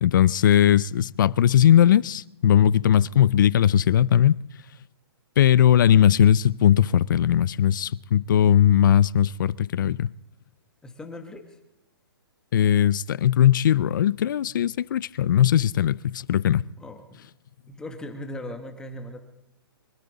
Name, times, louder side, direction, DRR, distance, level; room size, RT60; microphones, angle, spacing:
voice 1, 0.0-4.4 5.4-10.1 12.5-16.7, left 10 dB, 50° left, 0.4 m, -19 dB
voice 2, 10.8-11.6 16.8-17.2 17.7-19.2, left 1 dB, 5° left, 1.1 m, -38 dB
23.5 x 13.0 x 4.0 m
hypercardioid pair, 160°, 13 cm